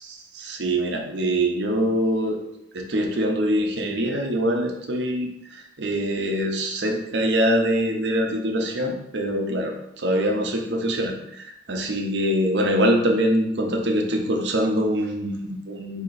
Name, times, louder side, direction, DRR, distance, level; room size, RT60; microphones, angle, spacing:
voice 1, 0.0-2.4 2.7-16.0, equal, 75° right, 2 dB, 0.8 m, -24 dB
4.3 x 2.9 x 4.0 m, 0.81 s
head